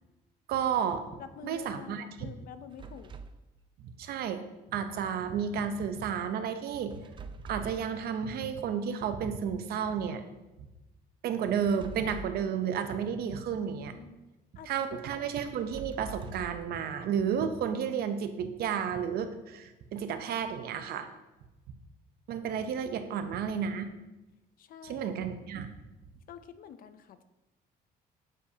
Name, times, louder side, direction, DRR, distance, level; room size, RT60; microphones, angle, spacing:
voice 1, 0.5-1.0 1.4-2.3 3.8-4.4 4.7-7.0 7.5-10.2 11.2-13.9 14.7-21.1 22.3-23.9 24.8-25.8, right 7 dB, 65° right, 9 dB, 0.7 m, -32 dB
voice 2, 1.2-3.1 13.6-14.2 14.6-15.0 22.9-23.2 24.6-25.1 26.3-27.2, left 8 dB, 60° left, 11 dB, 0.5 m, -48 dB
sound 1, 2.7-3.4 6.9-7.9 11.5-12.5 15.4-16.7, right 4 dB, 30° right, 0.4 m, -45 dB
7.6 x 6.4 x 2.8 m, 1.0 s
cardioid pair, 110°, 17 cm